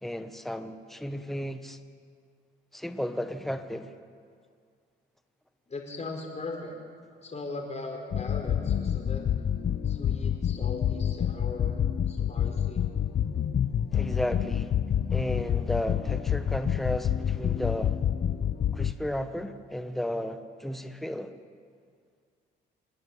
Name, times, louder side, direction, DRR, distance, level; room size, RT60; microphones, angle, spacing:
voice 1, 0.0-1.8 2.7-3.9 13.9-14.8 15.1-18.0 18.7-21.4, equal, ahead, 1.2 m, -33 dB
voice 2, 5.7-6.8 7.2-9.2 9.8-11.8 12.1-12.9, left 3 dB, 35° left, 4.5 m, -39 dB
sound 1, 8.1-18.9, left 9 dB, 50° left, 0.7 m, -28 dB
27.5 x 9.8 x 9.9 m
cardioid pair, 90°, 20 cm